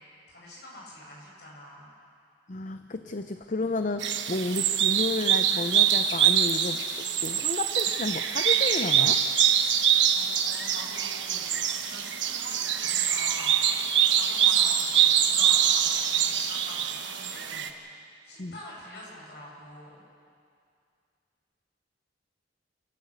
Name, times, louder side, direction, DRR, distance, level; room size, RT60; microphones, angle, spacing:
voice 1, 0.3-1.9 10.1-20.0, equal, 60° left, -4 dB, 7.6 m, -46 dB
voice 2, 2.5-9.2 18.4-18.5, left 2 dB, 45° left, 8 dB, 0.6 m, -32 dB
sound 1, 4.0-17.7, right 9 dB, 80° right, 1.2 m, -24 dB
28.5 x 12.5 x 8.1 m, 2.3 s
head